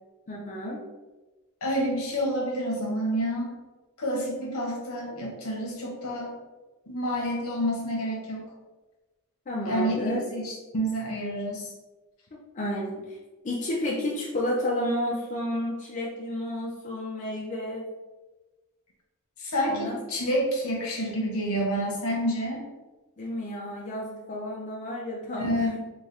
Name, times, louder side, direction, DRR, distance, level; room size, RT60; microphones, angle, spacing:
voice 1, 0.3-0.8 9.5-10.2 12.3-13.2 13.4-17.9 19.7-20.0 23.2-25.8, left 1 dB, 35° left, -4 dB, 0.5 m, -31 dB
voice 2, 1.6-3.5 4.0-6.3 6.9-8.4 9.6-11.7 19.4-22.6 25.4-25.7, equal, 70° left, -1 dB, 1.0 m, -29 dB
3.0 x 2.4 x 3.9 m, 1.2 s
head